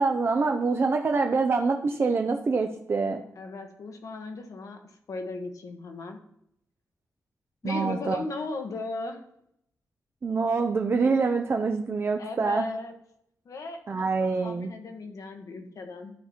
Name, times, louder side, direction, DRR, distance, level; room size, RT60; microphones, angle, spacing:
voice 1, 0.0-3.2 7.6-8.2 10.2-12.6 13.9-14.7, right 4 dB, 40° right, 4 dB, 0.6 m, -25 dB
voice 2, 3.3-6.2 7.6-9.2 12.2-12.9 13.4-16.1, left 3 dB, 65° left, 5 dB, 1.2 m, -37 dB
11.5 x 4.2 x 4.3 m, 0.74 s
wide cardioid pair, 110°, 6 cm